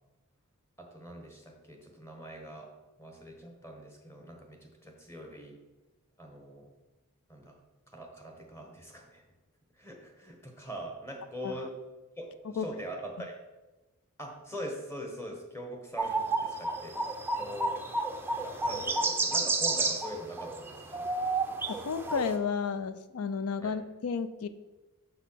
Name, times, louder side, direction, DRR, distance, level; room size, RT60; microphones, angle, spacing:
voice 1, 0.8-2.7 3.0-5.6 6.2-6.7 7.3-7.6 7.9-9.2 9.8-11.7 12.2-13.3 14.2-17.8 18.4-21.1 23.6-23.7, equal, 10° left, 2 dB, 1.1 m, -43 dB
sound 1, 16.0-22.4, right 3 dB, 10° right, 0.4 m, -31 dB
voice 2, 21.9-24.5, left 5 dB, 75° left, 12 dB, 0.4 m, -32 dB
6.3 x 4.1 x 5.7 m, 1.1 s
head